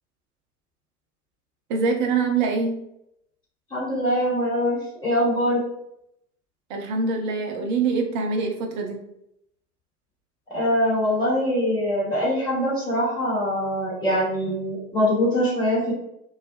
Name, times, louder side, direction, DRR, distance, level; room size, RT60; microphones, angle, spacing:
voice 1, 1.7-2.8 6.7-9.0, right 4 dB, 35° right, 2 dB, 0.4 m, -24 dB
voice 2, 3.7-5.6 10.5-15.9, equal, 10° left, -8 dB, 1.4 m, -23 dB
2.5 x 2.3 x 2.2 m, 0.78 s
figure-of-eight pair, 90°, 47 cm